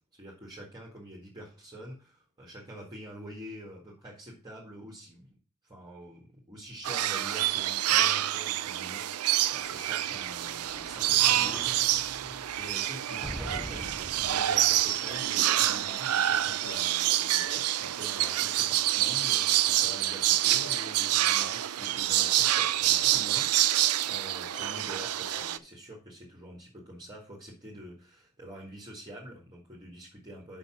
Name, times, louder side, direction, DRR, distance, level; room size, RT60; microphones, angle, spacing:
voice 1, 0.1-5.4 5.6-12.2 12.5-30.6, equal, 20° right, -4 dB, 1.8 m, -46 dB
sound 1, 6.8-25.6, right 13 dB, 70° right, 0.5 m, -27 dB
sound 2, 9.6-15.8 16.3-16.4, equal, ahead, 0.3 m, -44 dB
sound 3, 13.5-13.8 14.3-14.5 15.1-15.4 15.8-16.1 16.6-16.9 17.4-17.7 18.2-18.5 19.0-19.3 19.8-20.1 20.6-20.9 21.4-21.7 22.2-22.5 22.9-23.2 23.7-24.0 24.5-24.8 25.3-25.6, left 2 dB, 55° left, 1.8 m, -47 dB
6.7 x 5.8 x 5.9 m, 0.35 s
head